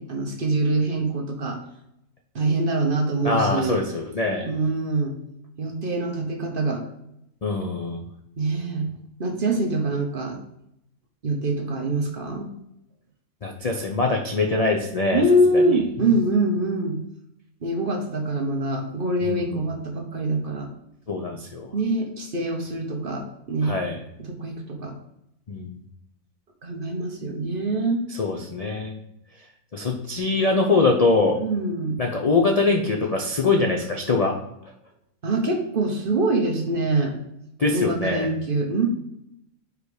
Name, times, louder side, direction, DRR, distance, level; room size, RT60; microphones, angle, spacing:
voice 1, 0.0-1.6 2.3-3.8 4.4-5.2 5.6-6.9 8.4-8.9 9.2-10.4 11.2-12.5 15.1-17.0 17.6-20.7 21.7-23.7 24.2-24.9 26.6-28.0 31.4-32.0 35.2-37.2 37.7-38.9, right 2 dB, 45° right, 2 dB, 0.9 m, -24 dB
voice 2, 3.2-4.5 7.4-8.0 13.4-15.2 15.5-15.8 19.2-19.6 21.1-21.7 23.6-24.0 25.5-25.8 28.2-28.9 29.7-31.4 32.0-34.3 37.6-38.3, left 3 dB, 45° left, 1 dB, 0.5 m, -23 dB
5.0 x 4.7 x 4.8 m, 0.81 s
omnidirectional pair, 1.5 m